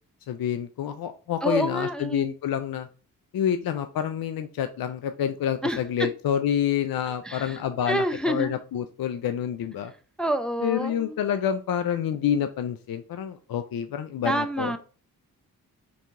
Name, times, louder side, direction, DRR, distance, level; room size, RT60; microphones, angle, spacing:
voice 1, 0.3-2.9 3.3-9.9 10.6-14.7, left 9 dB, 65° left, 9 dB, 0.5 m, -28 dB
voice 2, 1.4-2.3 5.6-5.8 7.2-7.6 7.9-8.6 10.2-11.2 14.2-14.8, right 1 dB, ahead, 7 dB, 0.5 m, -27 dB
3.9 x 2.7 x 3.5 m, 0.39 s
supercardioid pair, 40°, 38 cm